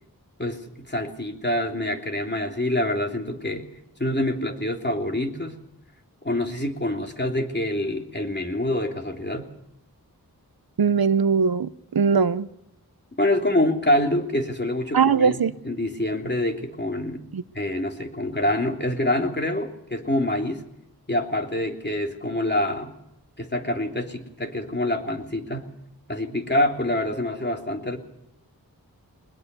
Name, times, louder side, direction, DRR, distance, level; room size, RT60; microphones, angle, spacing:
voice 1, 0.4-3.7 4.0-5.6 6.2-9.5 13.2-17.2 17.5-20.6 21.1-22.9 23.4-25.7 26.1-28.0, left 1 dB, 30° left, 3.2 m, -26 dB
voice 2, 10.8-12.5 14.9-15.5 17.3-17.4, right 6 dB, 75° right, 0.8 m, -20 dB
21.5 x 20.5 x 6.9 m
wide cardioid pair, 55°, 37 cm